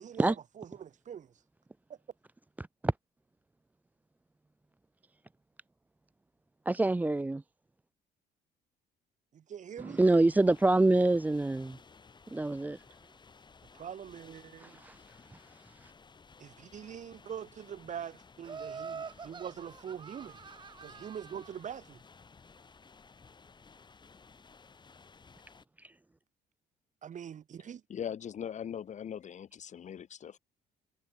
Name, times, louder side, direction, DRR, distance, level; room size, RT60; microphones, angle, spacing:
voice 1, 0.0-1.3 1.9-2.0 9.3-10.0 13.7-14.8 16.4-20.4 20.8-22.0 27.0-27.8, right 8 dB, 45° right, 4.1 m, -43 dB
voice 2, 2.6-2.9 6.7-7.4 9.8-11.8 12.3-12.8 14.6-15.0 15.3-15.9 25.8-25.9, right 2 dB, 10° right, 0.5 m, -27 dB
sound 1, 10.0-25.6, left 5 dB, 25° left, 3.8 m, -57 dB
Laughter, 18.4-21.6, right 5 dB, 30° right, 1.0 m, -45 dB
voice 3, 27.9-30.4, left 8 dB, 45° left, 1.7 m, -40 dB
cardioid pair, 110°, 17 cm